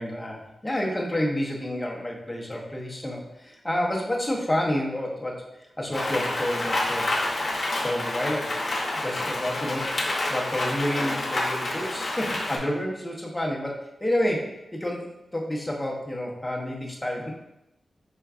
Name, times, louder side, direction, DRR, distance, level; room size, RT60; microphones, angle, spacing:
voice 1, 0.0-7.2 7.8-8.7 8.9-9.9 10.3-17.3, left 1 dB, 15° left, -2 dB, 0.7 m, -29 dB
Rain, 5.9-12.6, left 2 dB, 50° left, 0.8 m, -28 dB
4.5 x 3.5 x 2.3 m, 0.90 s
wide cardioid pair, 100°, 0 cm